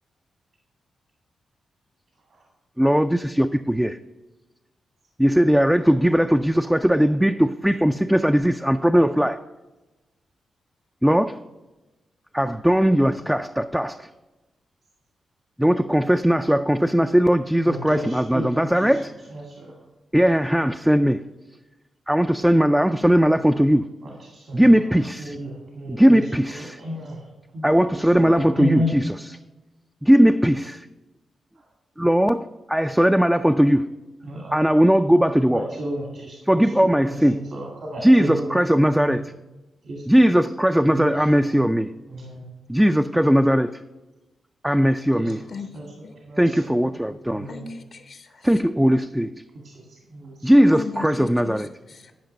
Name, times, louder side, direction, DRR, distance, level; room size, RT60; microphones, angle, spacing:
voice 1, 2.8-4.0 5.2-9.4 11.0-11.4 12.3-14.1 15.6-19.1 20.1-21.2 22.1-23.9 24.5-25.4 25.9-26.8 27.6-29.0 30.0-30.9 32.0-33.9 34.5-35.6 36.5-37.4 38.0-39.2 40.1-41.9 42.7-43.8 44.6-45.4 46.4-47.5 48.4-49.3 50.4-51.7, equal, 5° right, 0.3 m, -19 dB
voice 2, 17.7-19.0 19.3-19.7 24.0-27.3 27.5-28.9 31.6-31.7 34.2-34.6 35.0-35.1 35.5-38.6 38.8-39.2 39.8-40.0 40.8-41.7 42.1-42.5 45.1-45.3 45.7-46.8 47.3-47.7 49.5-50.5 50.9-51.0, equal, 70° right, 1.9 m, -33 dB
voice 3, 47.5-48.6 50.6-52.1, left 4 dB, 65° left, 0.8 m, -37 dB
10.5 x 5.2 x 5.2 m
cardioid pair, 60°, 0 cm